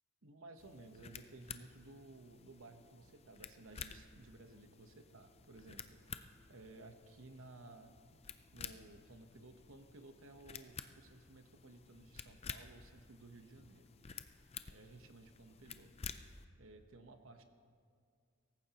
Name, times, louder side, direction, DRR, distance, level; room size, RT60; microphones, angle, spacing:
voice 1, 0.2-8.2 8.5-13.9 14.4-15.9 16.6-17.4, right 2 dB, 60° right, 7 dB, 1.0 m, -57 dB
sound 1, 0.6-16.4, left 7 dB, 25° left, 0.4 m, -52 dB
24.0 x 14.5 x 3.0 m, 2.2 s
head